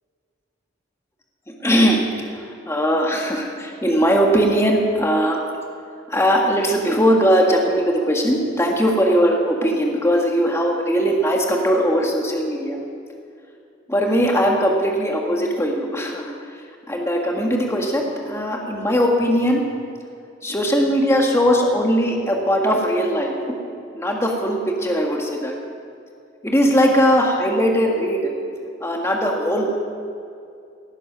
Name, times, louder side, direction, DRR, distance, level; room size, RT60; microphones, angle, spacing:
voice 1, 1.6-2.0 2.4-5.4 6.1-12.8 13.9-16.3 16.9-19.6 20.4-23.5 23.9-25.5 26.4-28.3 28.8-29.8, equal, 15° left, 0 dB, 1.6 m, -19 dB
18.0 x 9.9 x 6.1 m, 2.4 s
head